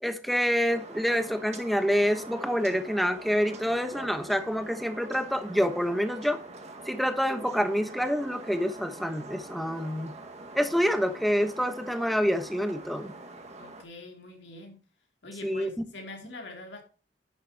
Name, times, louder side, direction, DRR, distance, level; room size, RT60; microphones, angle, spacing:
voice 1, 0.0-6.4 6.9-10.1 10.5-13.1 15.4-15.7, equal, ahead, 1.2 m, -27 dB
sound 1, 0.7-13.8, right 2 dB, 40° right, 2.0 m, -45 dB
voice 2, 13.6-14.8 15.2-16.8, left 2 dB, 80° left, 3.1 m, -44 dB
10.5 x 10.0 x 3.0 m
head